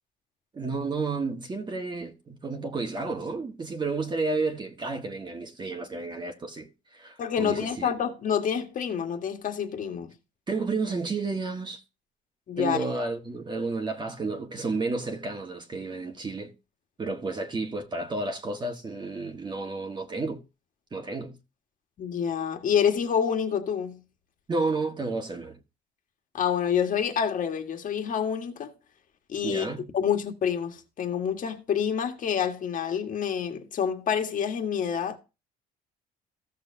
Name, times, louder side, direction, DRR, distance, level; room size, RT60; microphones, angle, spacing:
voice 1, 0.5-7.9 10.5-11.8 12.6-16.5 17.0-20.4 20.9-21.4 24.5-25.6 29.4-29.9, right 3 dB, 25° right, 1.5 m, -31 dB
voice 2, 7.2-10.1 12.5-12.8 22.0-24.0 26.3-28.7 29.3-29.7 29.9-35.2, left 8 dB, 50° left, 1.7 m, -27 dB
15.5 x 6.7 x 2.7 m
cardioid pair, 110°, 17 cm